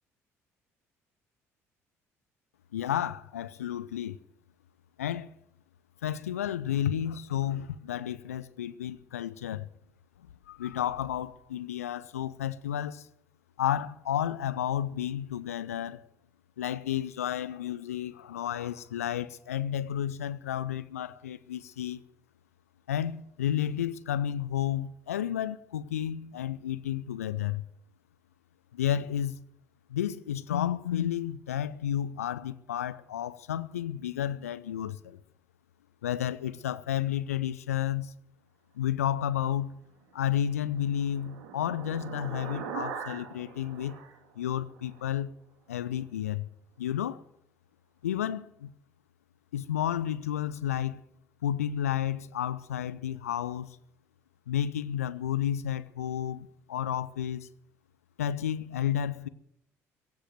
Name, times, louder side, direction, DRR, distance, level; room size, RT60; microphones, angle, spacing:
voice 1, 2.7-4.2 5.0-5.3 6.0-9.7 10.5-13.1 13.6-16.1 16.6-22.0 22.9-27.6 28.7-29.4 29.9-35.2 36.0-38.1 38.8-39.8 40.1-44.0 44.4-45.3 45.7-46.5 46.8-47.2 48.0-48.7 49.5-51.0 51.4-53.8 54.5-57.5 58.2-59.3, left 10 dB, 80° left, 0.5 m, -31 dB
sound 1, 40.3-45.0, right 7 dB, 65° right, 2.4 m, -42 dB
16.5 x 7.7 x 9.2 m
figure-of-eight pair, 55°, 8 cm